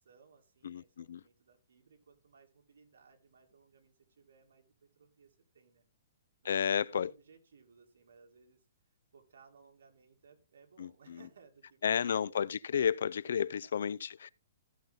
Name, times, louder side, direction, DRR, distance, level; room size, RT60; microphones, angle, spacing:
voice 1, 0.0-5.9 6.4-8.7 9.1-12.6 13.2-13.8, right 5 dB, 85° right, 2.3 m, -62 dB
voice 2, 0.6-1.2 6.4-7.1 10.8-11.2 11.8-14.3, left 7 dB, 70° left, 0.4 m, -32 dB
15.0 x 5.5 x 3.6 m
hypercardioid pair, 175°, 0 cm